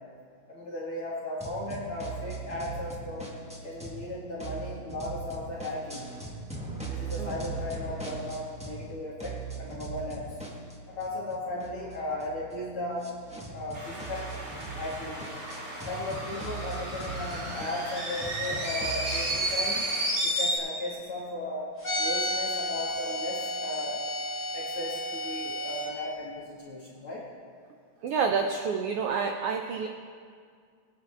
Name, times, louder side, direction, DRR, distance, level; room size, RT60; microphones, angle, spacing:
voice 1, 0.5-3.3 3.6-6.1 6.9-10.3 10.9-13.1 13.5-14.3 14.8-15.3 15.8-19.8 20.2-24.0 24.5-27.2, left 1 dB, 50° left, -6 dB, 2.4 m, -36 dB
sound 1, 1.4-4.1 4.4-8.9 9.2-19.4, right 3 dB, 10° right, 0.3 m, -40 dB
sound 2, 13.7-20.6, right 1 dB, 40° right, 3.2 m, -32 dB
sound 3, 21.8-25.9, left 1 dB, 25° left, 4.3 m, -32 dB
voice 2, 28.0-29.9, right 5 dB, 80° right, 4 dB, 1.3 m, -28 dB
22.5 x 9.2 x 3.4 m, 2.1 s
omnidirectional pair, 3.4 m